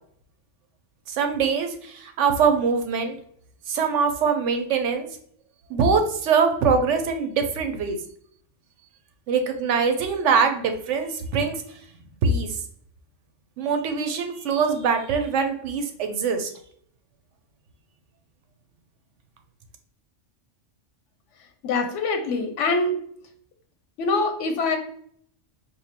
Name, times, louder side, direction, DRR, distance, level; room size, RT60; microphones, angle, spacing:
voice 1, 1.1-3.2 3.7-5.1 5.7-8.0 9.3-11.6 12.2-12.5 13.6-16.5, right 5 dB, 85° right, 6 dB, 1.0 m, -23 dB
voice 2, 21.6-23.0 24.0-24.8, left 3 dB, 90° left, 5 dB, 1.0 m, -24 dB
4.5 x 2.7 x 2.8 m, 0.63 s
omnidirectional pair, 1.2 m